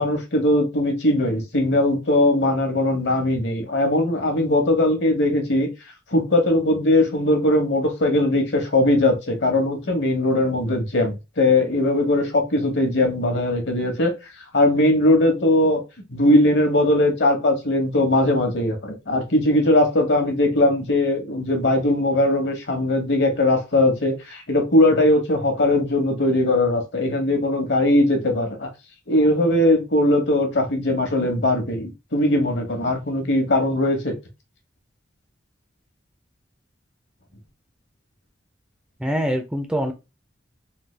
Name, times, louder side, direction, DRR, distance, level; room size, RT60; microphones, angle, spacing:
voice 1, 0.0-5.7 6.1-14.1 14.5-15.8 16.1-28.7 29.1-34.1, left 1 dB, 65° left, 1.0 m, -20 dB
voice 2, 39.0-39.9, equal, 5° right, 0.3 m, -24 dB
3.3 x 2.2 x 3.2 m
head